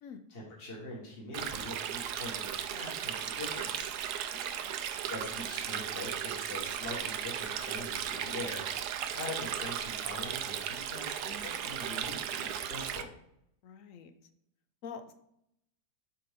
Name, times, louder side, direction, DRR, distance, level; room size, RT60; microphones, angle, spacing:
voice 1, 0.3-3.9 5.0-8.6 9.1-13.1, left 2 dB, 35° left, -5 dB, 1.7 m, -43 dB
Stream, 1.3-13.0, right 9 dB, 75° right, 1.1 m, -36 dB
voice 2, 4.3-4.7 13.6-14.1 14.8-15.1, left 6 dB, 65° left, 9 dB, 0.9 m, -46 dB
7.6 x 5.2 x 3.6 m, 0.75 s
omnidirectional pair, 1.8 m